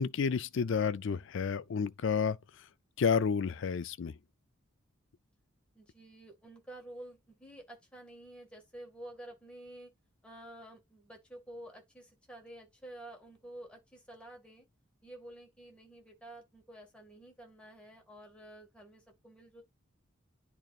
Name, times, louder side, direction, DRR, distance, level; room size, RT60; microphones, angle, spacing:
voice 1, 0.0-2.4 3.0-4.2, left 6 dB, 60° left, 0.4 m, -30 dB
voice 2, 5.7-9.9 10.2-14.7 15.0-19.6, right 1 dB, 5° left, 1.8 m, -50 dB
11.0 x 3.8 x 2.4 m
head